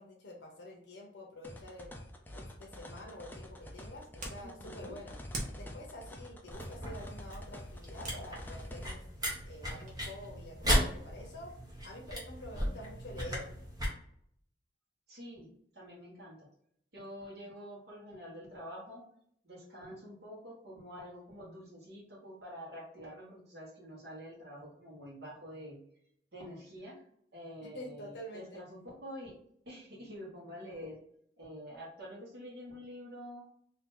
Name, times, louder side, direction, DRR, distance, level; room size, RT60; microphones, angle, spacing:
voice 1, 0.0-2.0 2.4-5.2 5.5-9.0 9.4-11.5 11.8-13.5 27.6-28.6, left 1 dB, 70° left, 0 dB, 0.7 m, -48 dB
sound 1, 1.4-8.9, left 1 dB, 10° left, 0.4 m, -48 dB
sound 2, 3.3-10.1, right 1 dB, 40° right, 0.9 m, -48 dB
voice 2, 4.4-4.9 15.1-15.5 15.7-16.5 16.9-19.0 19.4-25.8 26.3-27.0 27.3-29.3 29.6-31.0 31.4-33.4, equal, 60° right, -6 dB, 1.3 m, -47 dB
sound 3, 6.5-13.9, equal, 20° right, 1.0 m, -36 dB
2.8 x 2.7 x 3.7 m, 0.68 s
head